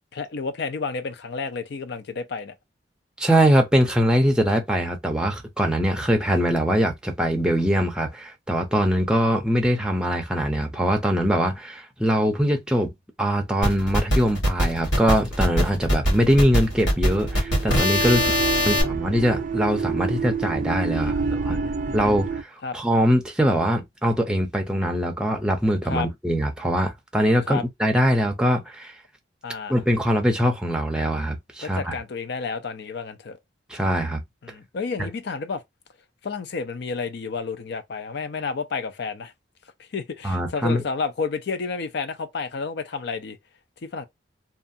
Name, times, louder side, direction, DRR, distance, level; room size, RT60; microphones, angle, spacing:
voice 1, 0.1-2.5 18.1-19.0 20.9-22.0 22.6-22.8 25.8-26.1 27.5-27.6 29.4-29.7 31.6-33.4 34.4-35.6 36.2-39.3 39.9-43.4 43.9-44.1, left 4 dB, 65° left, 0.5 m, -31 dB
voice 2, 3.2-12.9 13.2-18.3 18.6-21.2 21.5-21.6 21.9-22.5 22.7-28.9 29.7-31.9 33.7-34.2 40.2-40.8, equal, 5° right, 0.6 m, -22 dB
sound 1, 13.6-18.8, equal, 85° left, 1.4 m, -22 dB
sound 2, 16.0-22.4, right 5 dB, 45° right, 0.4 m, -29 dB
2.7 x 2.3 x 2.6 m
head